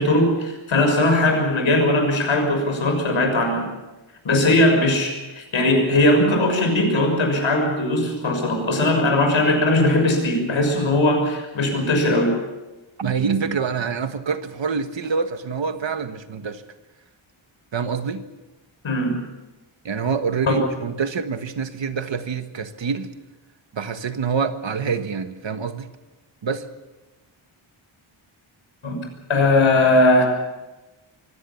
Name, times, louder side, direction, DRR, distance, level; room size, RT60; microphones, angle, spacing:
voice 1, 0.0-3.6 4.2-12.3 18.8-19.1 20.4-20.6 28.8-29.0 29.3-30.3, left 1 dB, 70° left, 6.4 m, -19 dB
voice 2, 13.0-16.6 17.7-18.2 19.8-23.1 23.7-25.9 26.4-26.7, right 5 dB, 60° right, 1.5 m, -26 dB
24.5 x 16.5 x 7.1 m
wide cardioid pair, 180°, 50 cm